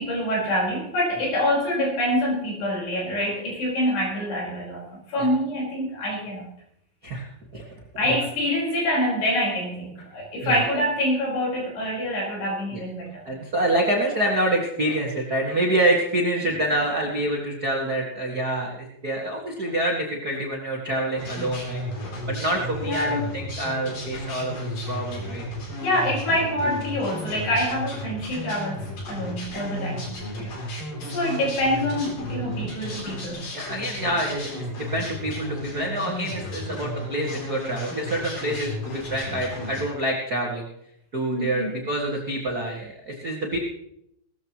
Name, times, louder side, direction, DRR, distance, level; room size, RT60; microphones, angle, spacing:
voice 1, 0.0-6.5 8.0-13.2 16.4-16.5 22.8-23.4 25.8-30.6 31.0-33.4 41.3-41.8, left 1 dB, 80° left, -3 dB, 6.7 m, -26 dB
voice 2, 13.2-21.8 22.3-25.4 30.4-30.5 30.9-31.1 33.5-40.7 41.1-43.6, right 1 dB, 45° right, -2 dB, 1.2 m, -27 dB
sound 1, 21.2-39.8, equal, 55° left, 4.7 m, -34 dB
18.5 x 13.5 x 3.0 m, 0.75 s
omnidirectional pair, 4.6 m